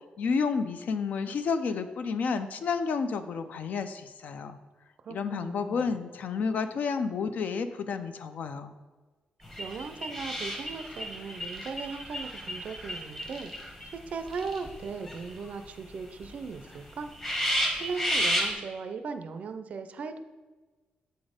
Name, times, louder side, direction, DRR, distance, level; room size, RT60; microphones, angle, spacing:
voice 1, 0.2-4.6 5.1-8.7, left 5 dB, 55° left, 10 dB, 0.4 m, -30 dB
voice 2, 5.0-5.9 9.6-13.5 13.9-17.1 17.8-20.2, right 5 dB, 50° right, 9 dB, 0.4 m, -38 dB
sound 1, 9.4-13.9 14.3-15.5 15.9-16.0 16.2-16.3 16.7-16.8 17.1-18.5, equal, 20° left, 1.1 m, -32 dB
7.8 x 4.1 x 5.0 m, 1.3 s
wide cardioid pair, 175°, 3 cm